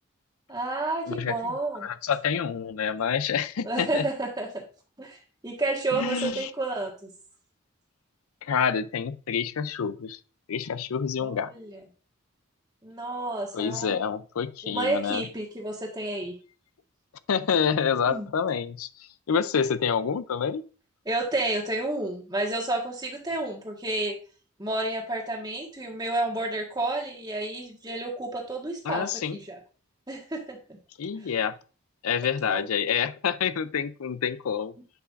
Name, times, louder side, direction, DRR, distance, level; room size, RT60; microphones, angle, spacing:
voice 1, 0.5-1.9 3.6-4.6 5.0-7.1 11.2-11.8 12.8-14.0 14.6-16.4 18.1-18.3 21.0-24.2 24.6-29.6 30.1-30.8 31.2-31.3 32.4-32.7, right 2 dB, 20° right, 1.5 m, -31 dB
voice 2, 1.8-4.1 6.0-6.5 8.4-10.2 10.5-11.5 13.5-15.2 17.3-18.9 19.3-20.6 28.9-29.4 31.0-31.6 32.0-34.7, left 7 dB, 85° left, 0.5 m, -27 dB
10.0 x 5.6 x 2.5 m
head